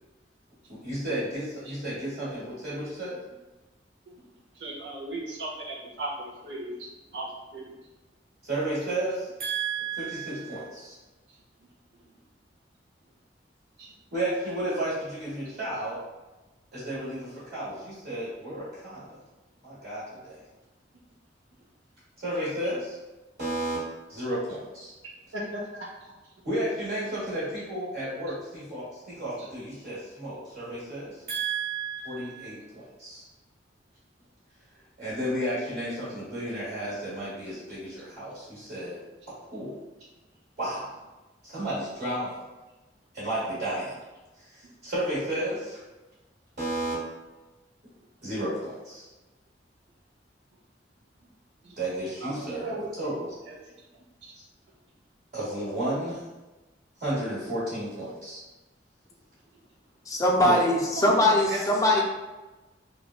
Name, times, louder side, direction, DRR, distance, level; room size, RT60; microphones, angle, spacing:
voice 1, 0.7-3.2 8.4-10.9 14.1-16.0 16.7-19.2 19.6-20.4 22.2-23.0 23.4-23.8 24.1-24.9 26.4-33.2 35.0-39.0 39.5-39.7 40.6-40.9 41.4-42.4 43.1-44.0 44.4-45.8 46.6-46.9 48.2-49.1 51.8-53.3 55.3-56.2 57.0-58.4 60.4-60.6, right 1 dB, 60° right, -11 dB, 1.2 m, -32 dB
voice 2, 4.5-7.8 13.8-13.9 15.4-15.5 25.3-26.1 29.4-29.5 44.6-44.7 51.6-51.8 52.2-53.1 53.5-53.6 54.2-54.3 60.9-61.6 61.9-62.0, right 2 dB, 75° right, -3 dB, 0.7 m, -37 dB
voice 3, 60.1-62.0, left 1 dB, 20° left, -1 dB, 0.4 m, -21 dB
3.3 x 2.2 x 2.3 m, 1.1 s
head